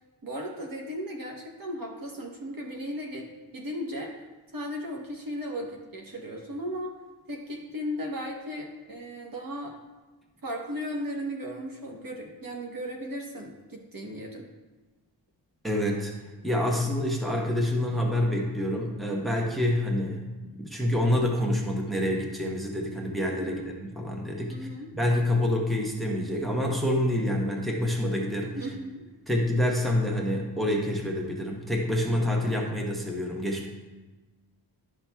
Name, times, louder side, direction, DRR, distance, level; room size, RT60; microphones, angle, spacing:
voice 1, 0.2-3.3 3.5-4.1 4.5-6.9 7.3-9.8 10.4-14.5 23.4-23.7 24.5-24.9 28.5-29.1, equal, 50° right, 1 dB, 1.0 m, -36 dB
voice 2, 15.6-16.1 16.4-20.2 20.5-24.7 24.9-28.7 29.3-33.7, left 1 dB, ahead, -1 dB, 0.9 m, -27 dB
12.0 x 5.9 x 2.3 m, 1.2 s
wide cardioid pair, 115°, 42 cm